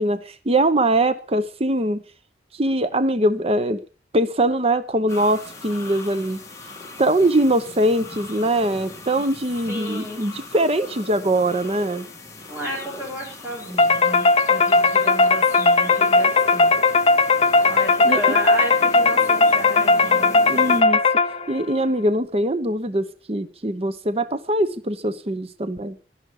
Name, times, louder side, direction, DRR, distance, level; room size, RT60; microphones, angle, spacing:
voice 1, 0.0-2.0 2.6-3.8 4.1-6.4 7.0-12.1 18.0-18.2 20.5-21.0 21.5-26.0, right 1 dB, 35° right, 12 dB, 0.9 m, -22 dB
sound 1, 5.1-20.8, left 3 dB, 20° left, 2.7 m, -39 dB
voice 2, 9.7-10.3 12.5-16.7 17.7-20.4, equal, 15° right, -3 dB, 7.1 m, -33 dB
sound 2, 13.8-21.6, left 3 dB, 35° left, 0.8 m, -17 dB
12.5 x 11.0 x 7.0 m, 0.38 s
head